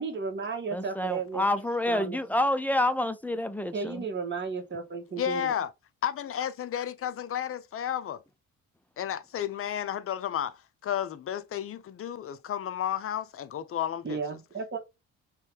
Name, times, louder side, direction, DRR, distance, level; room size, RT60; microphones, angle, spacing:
voice 1, 0.0-1.4 1.9-2.2 3.7-5.5 14.0-14.8, right 5 dB, 40° right, 1.5 m, -34 dB
voice 2, 0.7-4.0, left 1 dB, 5° left, 0.5 m, -28 dB
voice 3, 5.2-5.7 6.0-8.2 9.0-14.2, left 10 dB, 45° left, 0.6 m, -32 dB
3.1 x 3.1 x 3.3 m
cardioid pair, 90°, 30 cm